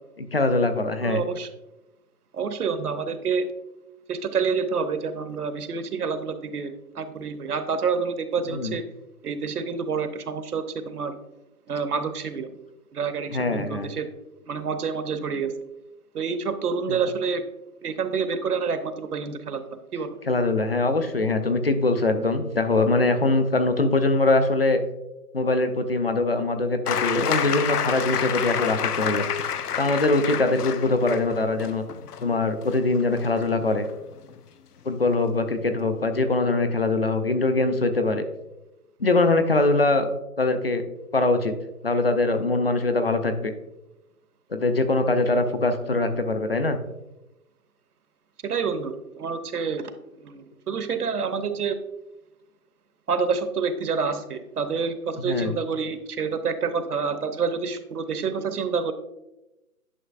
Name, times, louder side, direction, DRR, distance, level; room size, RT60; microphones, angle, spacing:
voice 1, 0.3-1.2 8.5-8.8 13.3-13.9 16.9-17.0 20.3-24.8 25.3-29.2 29.8-31.8 32.2-33.9 34.8-38.2 39.0-40.1 40.4-40.8 41.1-41.5 41.8-43.5 44.5-46.8 55.2-55.6, left 2 dB, 40° left, 9 dB, 0.5 m, -22 dB
voice 2, 1.0-1.5 2.3-3.5 4.1-8.8 9.2-11.2 11.7-12.5 12.9-14.1 14.5-15.5 16.1-17.4 17.8-19.7 19.9-20.1 48.4-49.9 50.2-51.8 53.1-58.9, right 5 dB, 75° right, 10 dB, 0.9 m, -28 dB
sound 1, 26.9-34.4 35.6-35.7, left 8 dB, 90° left, 0.6 m, -29 dB
9.8 x 5.5 x 2.4 m, 0.95 s
hypercardioid pair, 175°, 45 cm